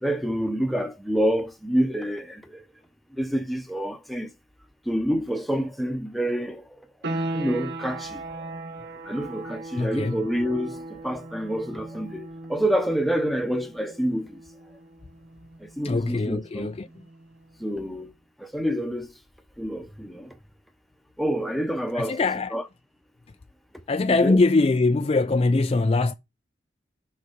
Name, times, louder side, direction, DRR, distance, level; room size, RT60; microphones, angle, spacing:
voice 1, 0.0-2.6 3.2-4.3 4.9-6.6 7.3-8.2 9.1-14.4 15.6-16.7 17.6-18.1 18.4-19.1 19.6-20.3 21.2-22.2 22.5-22.6 24.2-24.4, equal, ahead, 0.9 m, -27 dB
sound 1, 7.0-17.5, right 2 dB, 60° right, 0.9 m, -38 dB
voice 2, 9.8-10.2 15.8-17.0 21.9-22.6 23.9-26.1, left 3 dB, 30° left, 0.4 m, -22 dB
6.8 x 4.8 x 5.1 m
head